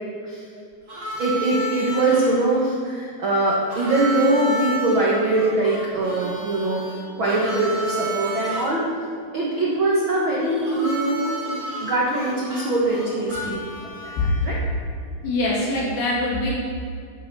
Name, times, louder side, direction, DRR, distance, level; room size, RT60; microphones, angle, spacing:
Harmonica, 0.9-2.3 3.7-8.7 10.6-14.6, right 1 dB, 25° right, 1.6 m, -32 dB
voice 1, 1.1-8.9 9.3-13.6 14.4-14.5, right 2 dB, 80° right, -5 dB, 1.1 m, -22 dB
voice 2, 15.2-16.5, left 1 dB, 90° left, -6 dB, 4.9 m, -24 dB
9.8 x 7.1 x 6.8 m, 2.3 s
omnidirectional pair, 4.6 m